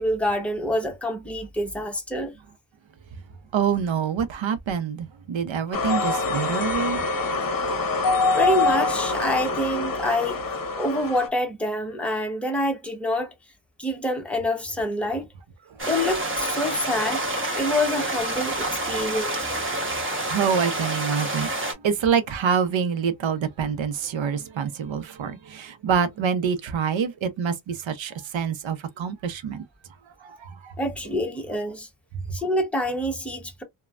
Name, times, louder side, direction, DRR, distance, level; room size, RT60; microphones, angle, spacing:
voice 1, 0.0-2.3 8.4-10.4 10.7-13.3 13.8-15.3 15.9-17.2 17.6-19.5 30.8-31.9 32.3-33.6, left 1 dB, 5° left, 0.9 m, -26 dB
voice 2, 3.5-7.0 19.7-29.6 30.2-30.7, right 7 dB, 75° right, 0.7 m, -26 dB
sound 1, 5.7-11.3, left 3 dB, 45° left, 0.8 m, -25 dB
sound 2, 15.8-21.7, right 1 dB, 25° right, 1.1 m, -28 dB
3.1 x 2.2 x 2.4 m
wide cardioid pair, 85°, 46 cm